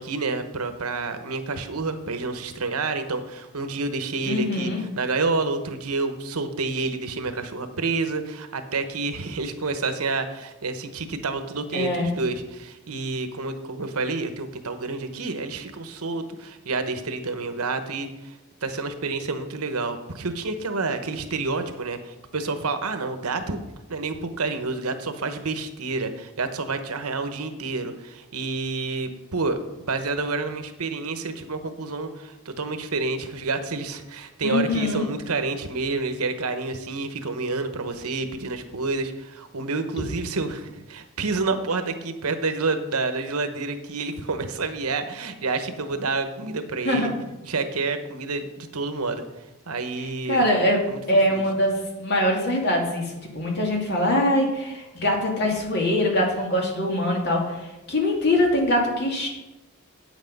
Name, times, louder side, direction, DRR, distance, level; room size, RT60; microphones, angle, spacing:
voice 1, 0.0-23.6 23.9-47.1 47.4-49.2 49.7-50.4 50.9-51.0 51.3-51.4, right 3 dB, 85° right, 8 dB, 1.0 m, -29 dB
voice 2, 4.3-4.8 11.7-12.1 34.4-35.0 46.8-47.1 50.3-50.8 51.1-59.3, left 1 dB, 50° left, 0 dB, 2.5 m, -23 dB
8.9 x 8.2 x 5.3 m, 1.0 s
head